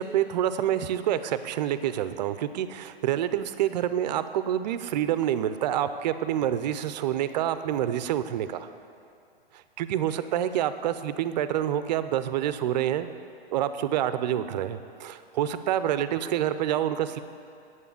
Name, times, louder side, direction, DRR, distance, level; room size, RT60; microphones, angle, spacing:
voice 1, 0.0-8.7 9.8-13.1 13.5-17.2, right 11 dB, 45° right, 12 dB, 0.6 m, -27 dB
8.5 x 7.0 x 8.5 m, 2.5 s
hypercardioid pair, 140°, 30 cm